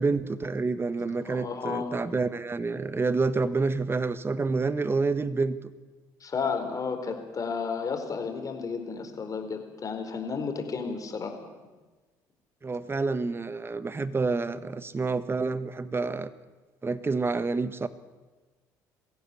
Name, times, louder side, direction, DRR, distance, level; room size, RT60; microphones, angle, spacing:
voice 1, 0.0-5.6 12.6-16.3 16.8-17.9, right 4 dB, 25° right, 13 dB, 1.5 m, -28 dB
voice 2, 1.2-1.9 6.2-11.3, left 5 dB, 40° left, 5 dB, 4.6 m, -32 dB
22.0 x 16.0 x 8.6 m, 1.2 s
hypercardioid pair, 65°, 9 cm